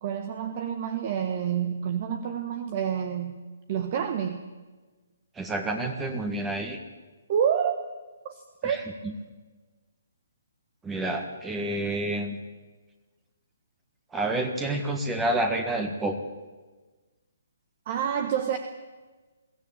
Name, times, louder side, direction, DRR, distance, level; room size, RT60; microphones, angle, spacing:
voice 1, 0.0-3.4 3.7-4.4 7.3-7.7 8.2-8.8 17.9-18.6, right 8 dB, 35° right, 9 dB, 1.3 m, -28 dB
voice 2, 5.4-6.8 8.6-8.8 9.0-9.1 10.8-12.4 14.1-16.2, right 1 dB, 10° right, 5 dB, 1.7 m, -29 dB
22.5 x 15.5 x 8.7 m, 1.3 s
figure-of-eight pair, 130°, 0 cm